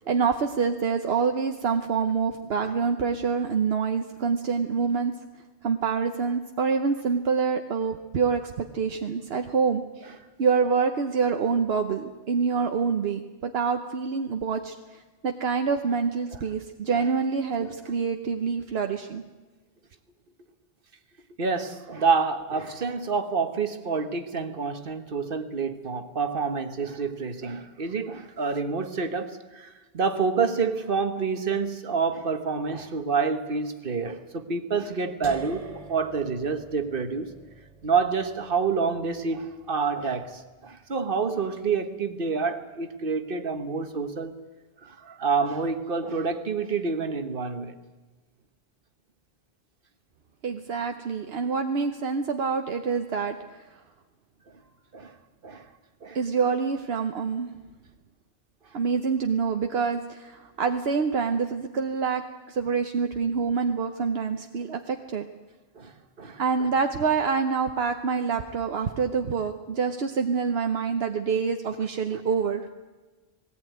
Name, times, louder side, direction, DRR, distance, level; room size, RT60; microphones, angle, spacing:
voice 1, 0.1-5.1 5.6-19.2 50.4-53.4 56.1-57.5 58.7-65.3 66.4-72.7, right 5 dB, 75° right, 1.1 m, -26 dB
voice 2, 21.4-37.3 37.8-44.3 44.8-47.7 54.9-55.1 55.4-55.6 56.0-56.2 65.7-65.9 66.2-66.7 72.1-72.2, right 5 dB, 60° right, 1.5 m, -28 dB
sound 1, 35.2-41.2, right 3 dB, 35° right, 1.1 m, -47 dB
19.0 x 17.5 x 9.3 m
omnidirectional pair, 1.0 m